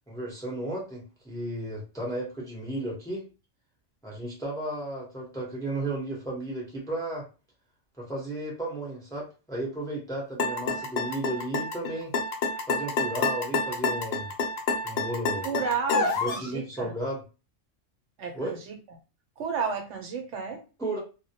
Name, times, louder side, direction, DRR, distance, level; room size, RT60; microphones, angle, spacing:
voice 1, 0.1-3.2 4.0-7.3 8.0-12.1 12.7-14.3 14.8-15.5 16.2-17.2 18.3-18.6 20.8-21.0, right 1 dB, 5° left, -3 dB, 0.6 m, -34 dB
sound 1, 10.4-16.5, left 4 dB, 60° left, 0.7 m, -28 dB
voice 2, 15.4-16.9 18.2-18.7 19.4-20.6, right 5 dB, 75° right, 4 dB, 0.9 m, -32 dB
2.2 x 2.0 x 2.7 m, 0.32 s
omnidirectional pair, 1.3 m